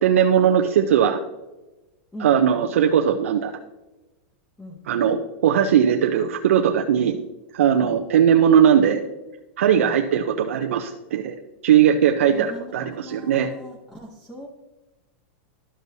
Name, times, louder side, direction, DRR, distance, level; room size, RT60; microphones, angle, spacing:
voice 1, 0.0-1.2 2.2-3.5 4.9-7.2 7.5-9.0 9.6-11.3 11.6-13.5, right 8 dB, 85° right, 3 dB, 0.5 m, -19 dB
voice 2, 12.3-14.5, left 1 dB, 10° left, 0 dB, 0.8 m, -40 dB
12.0 x 6.0 x 2.7 m, 1.1 s
supercardioid pair, 150°, 7 cm